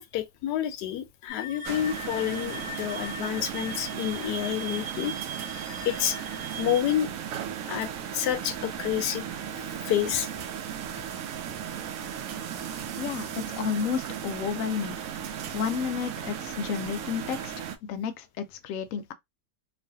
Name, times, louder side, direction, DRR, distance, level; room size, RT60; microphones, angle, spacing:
voice 1, 0.0-5.1 5.8-6.2 6.6-7.1 7.7-9.2 9.5-10.3, left 11 dB, 85° left, 1.2 m, -29 dB
sound 1, 1.3-6.8, right 1 dB, 10° right, 0.5 m, -39 dB
sound 2, 1.6-17.8, right 9 dB, 70° right, 0.8 m, -36 dB
voice 2, 13.0-15.1 15.5-19.1, left 7 dB, 70° left, 0.8 m, -31 dB
3.1 x 2.4 x 2.6 m
omnidirectional pair, 1.7 m